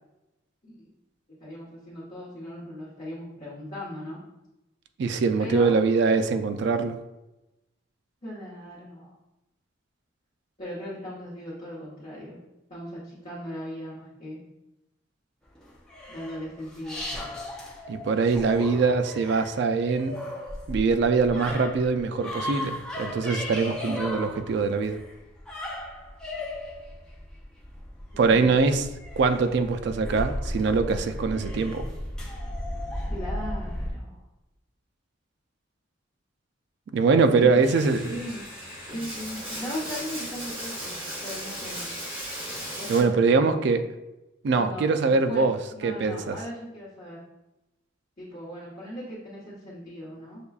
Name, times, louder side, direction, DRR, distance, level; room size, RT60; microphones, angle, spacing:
voice 1, 1.4-4.2 5.4-5.8 8.2-9.1 10.6-12.4 12.7-14.4 16.1-17.0 28.1-28.6 33.1-34.2 37.3-37.6 38.1-38.4 38.9-41.8 42.8-43.5 44.5-47.2 48.2-50.4, equal, 40° left, -10 dB, 1.0 m, -38 dB
voice 2, 5.0-7.0 17.9-20.2 20.7-25.0 28.2-28.9 29.2-31.9 36.9-38.2 42.9-43.8 44.4-45.6 45.8-46.4, right 4 dB, 60° right, 8 dB, 0.3 m, -23 dB
sound 1, 15.6-33.9, left 1 dB, 5° left, 0.5 m, -36 dB
Bathtub (filling or washing), 37.6-43.0, equal, 30° right, 1.2 m, -36 dB
6.6 x 2.3 x 2.3 m, 0.96 s
head